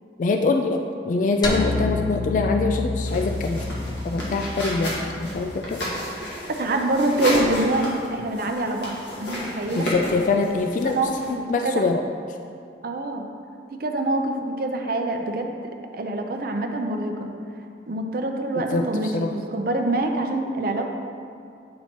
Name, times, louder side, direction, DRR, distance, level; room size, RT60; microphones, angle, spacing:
voice 1, 0.2-0.8 1.1-3.6 4.0-5.8 9.8-11.0 11.3-12.0 18.7-19.3, left 3 dB, 45° left, 4 dB, 0.3 m, -24 dB
sound 1, 1.4-5.8, left 2 dB, 25° left, 0.7 m, -29 dB
sound 2, 3.0-11.3, equal, 80° left, 1.8 m, -32 dB
voice 2, 6.5-9.9 10.8-11.1 11.4-11.8 12.8-13.2 13.7-17.3 17.9-20.9, right 2 dB, 55° right, 3 dB, 0.6 m, -25 dB
8.4 x 4.3 x 4.4 m, 2.4 s
head